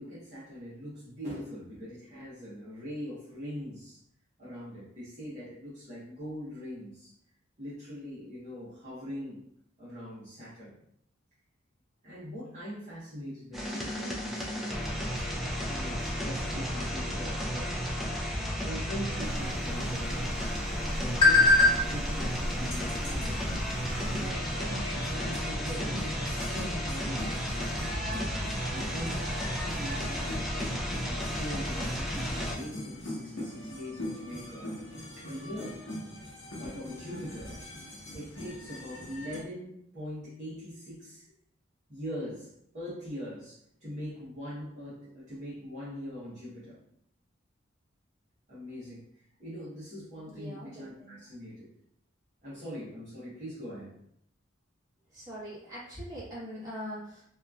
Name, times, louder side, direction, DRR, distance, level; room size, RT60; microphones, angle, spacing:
voice 1, 0.0-4.0 4.4-7.1 7.6-9.5 9.8-10.7 12.0-15.3 15.7-17.8 18.6-20.6 21.0-23.8 24.1-24.4 24.9-27.8 28.7-29.3 29.8-30.4 31.0-34.8 35.2-35.8 36.5-37.6 38.1-41.3 41.9-46.8 48.5-51.7 52.4-53.9, equal, 35° right, -11 dB, 0.9 m, -42 dB
sound 1, 13.5-32.6, equal, ahead, 0.3 m, -33 dB
sound 2, 19.2-24.3, left 2 dB, 25° left, 0.8 m, -27 dB
sound 3, 22.6-39.4, left 1 dB, 70° left, 0.9 m, -41 dB
voice 2, 50.3-51.2 55.1-57.2, equal, 20° right, -9 dB, 1.2 m, -42 dB
2.8 x 2.4 x 2.3 m, 0.68 s
head